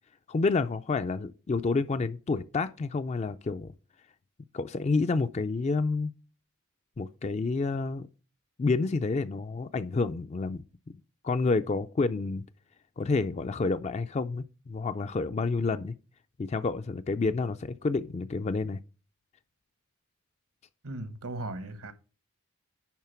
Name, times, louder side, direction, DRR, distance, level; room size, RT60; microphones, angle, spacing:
voice 1, 0.3-3.7 4.5-6.1 7.0-8.1 8.6-10.6 11.2-12.4 13.0-15.9 16.4-18.8, left 3 dB, 30° left, 0.3 m, -29 dB
voice 2, 20.8-21.9, right 2 dB, 75° right, 1.1 m, -37 dB
10.5 x 3.7 x 5.8 m
head